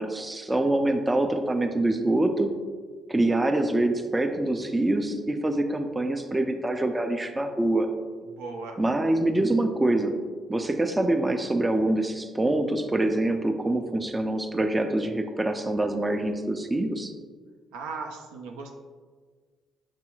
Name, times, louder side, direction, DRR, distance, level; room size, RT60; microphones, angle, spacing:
voice 1, 0.0-2.5 3.1-7.9 8.8-10.1 10.5-17.1, right 1 dB, 20° right, 6 dB, 0.4 m, -25 dB
voice 2, 8.4-8.8 17.7-18.7, right 4 dB, 80° right, 2 dB, 0.4 m, -37 dB
5.9 x 2.8 x 2.3 m, 1.5 s
hypercardioid pair, 55°, 0 cm